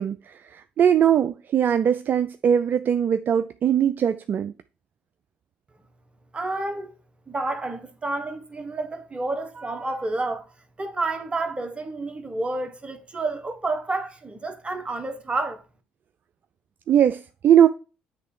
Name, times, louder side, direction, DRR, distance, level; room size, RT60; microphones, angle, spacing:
voice 1, 0.0-4.5 16.9-17.7, right 9 dB, 50° right, 0.4 m, -20 dB
voice 2, 6.3-6.9 7.3-10.5 10.8-15.6, right 2 dB, 25° right, 1.2 m, -30 dB
7.8 x 3.3 x 4.5 m
hypercardioid pair, 50°, 4 cm